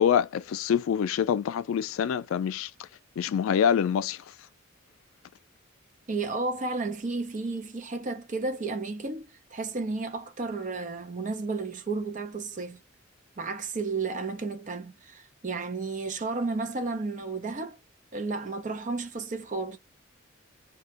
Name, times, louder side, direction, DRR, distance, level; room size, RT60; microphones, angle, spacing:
voice 1, 0.0-2.7 3.2-4.2, left 8 dB, 90° left, 0.3 m, -25 dB
voice 2, 6.1-12.8 13.4-17.8 18.1-19.8, right 3 dB, 40° right, 0.6 m, -32 dB
2.2 x 2.1 x 2.8 m
head